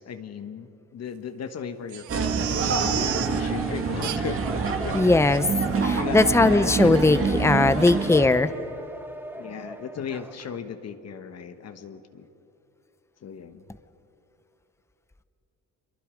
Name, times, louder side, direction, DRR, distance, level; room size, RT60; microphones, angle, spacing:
voice 1, 0.0-4.4 4.8-5.1 5.9-7.6 9.4-12.3 13.2-13.6, left 7 dB, 60° left, 8 dB, 1.3 m, -37 dB
Crying sobbing, 1.9-3.4 4.0-4.5 4.9-5.0 5.3-5.4 5.9-6.1 6.3-6.4, right 12 dB, 75° right, 0.9 m, -32 dB
sound 1, 2.1-8.3, right 5 dB, 45° right, 2.1 m, -26 dB
sound 2, 2.9-10.6, right 1 dB, 5° right, 1.2 m, -39 dB
voice 2, 4.9-5.4 5.8-8.5, left 2 dB, 10° left, 12 dB, 0.7 m, -19 dB
26.0 x 23.0 x 5.1 m, 2.9 s
cardioid pair, 90°, 30 cm